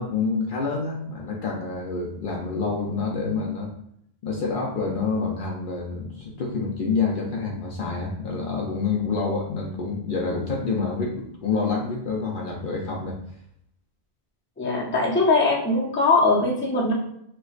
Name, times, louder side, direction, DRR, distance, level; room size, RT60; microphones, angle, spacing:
voice 1, 0.0-3.7 4.2-13.2, left 4 dB, 60° left, -1 dB, 0.7 m, -27 dB
voice 2, 14.6-16.9, left 3 dB, 15° left, -3 dB, 0.5 m, -21 dB
4.4 x 2.2 x 2.4 m, 0.72 s
omnidirectional pair, 1.1 m